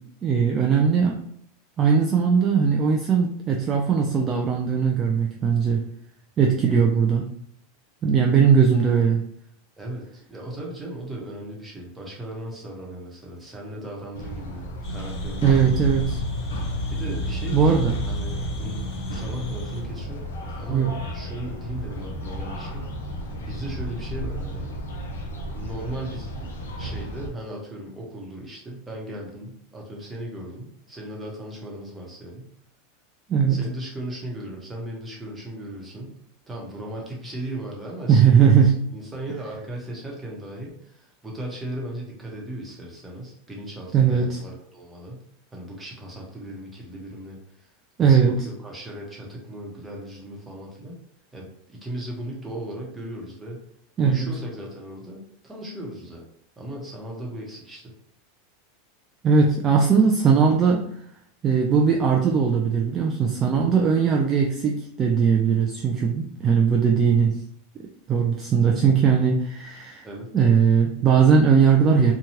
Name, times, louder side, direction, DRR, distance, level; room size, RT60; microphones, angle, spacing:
voice 1, 0.2-1.2 1.8-5.8 6.4-7.3 8.0-9.2 15.4-16.2 17.5-18.0 20.7-20.9 33.3-33.6 38.1-38.7 43.9-44.4 48.0-48.4 54.0-54.3 59.2-60.8 61.4-67.4 68.1-70.1 70.3-72.1, right 6 dB, 35° right, 0 dB, 0.4 m, -19 dB
voice 2, 9.8-15.5 16.9-20.3 20.5-22.9 23.5-24.7 25.5-32.5 33.5-36.2 36.5-45.2 45.5-47.7 48.0-51.0 51.3-53.6 54.0-56.2 56.6-57.9 70.0-70.3, right 1 dB, 15° right, -2 dB, 1.0 m, -37 dB
sound 1, 14.1-27.3, equal, 85° left, 0.6 m, -34 dB
sound 2, 14.8-19.8, left 1 dB, 45° left, 0.9 m, -31 dB
2.9 x 2.2 x 2.8 m, 0.69 s
hypercardioid pair, 105°, 0 cm